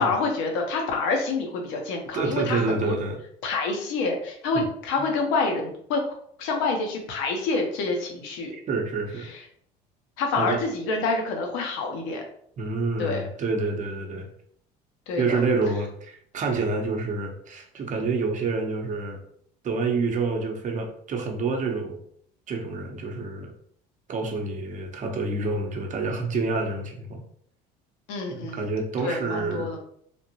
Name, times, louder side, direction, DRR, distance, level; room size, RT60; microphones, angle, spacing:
voice 1, 0.0-2.9 3.4-6.0 6.4-8.5 9.3-9.4 10.2-12.2 13.0-13.2 15.1-15.4 28.1-28.7 29.0-29.8, left 3 dB, 70° left, 2 dB, 0.9 m, -27 dB
voice 2, 2.1-3.2 8.7-9.3 10.4-10.6 12.6-14.3 15.2-19.2 19.6-22.0 22.5-23.5 24.1-27.2 28.3-29.7, right 3 dB, 35° right, 2 dB, 0.8 m, -28 dB
3.5 x 2.5 x 2.8 m, 0.66 s
hypercardioid pair, 80°, 21 cm